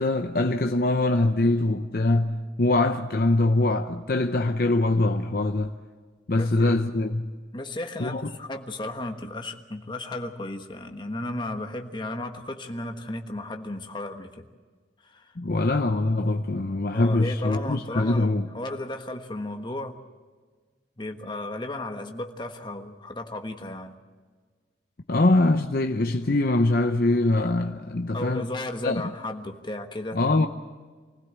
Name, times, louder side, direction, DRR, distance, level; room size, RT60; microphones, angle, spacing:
voice 1, 0.0-5.7 6.3-7.3 8.0-8.3 15.4-18.5 25.1-28.5 28.8-29.0 30.1-30.5, left 2 dB, 55° left, 0.7 m, -23 dB
voice 2, 6.3-6.7 7.5-14.5 15.0-15.3 16.9-20.0 21.0-24.0 28.1-30.5, left 1 dB, 25° left, 1.4 m, -34 dB
24.5 x 16.0 x 8.2 m
head